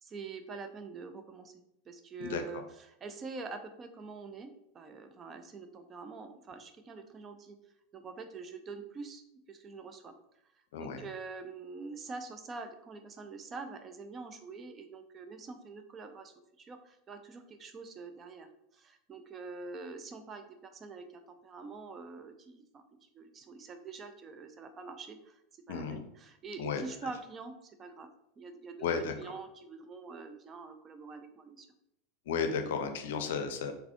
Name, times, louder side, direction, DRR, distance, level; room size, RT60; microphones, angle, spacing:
voice 1, 0.0-1.5 1.9-4.5 4.7-7.6 7.9-10.1 10.8-18.5 18.7-22.8 23.1-25.4 25.7-28.1 28.4-28.9 29.2-31.7, right 4 dB, 30° right, 7 dB, 0.5 m, -45 dB
voice 2, 2.2-2.6 10.7-11.1 25.7-26.0 26.6-26.8 28.8-29.3 32.3-33.7, left 5 dB, 60° left, 7 dB, 0.5 m, -34 dB
3.9 x 3.4 x 2.9 m, 0.78 s
figure-of-eight pair, 85°, 0 cm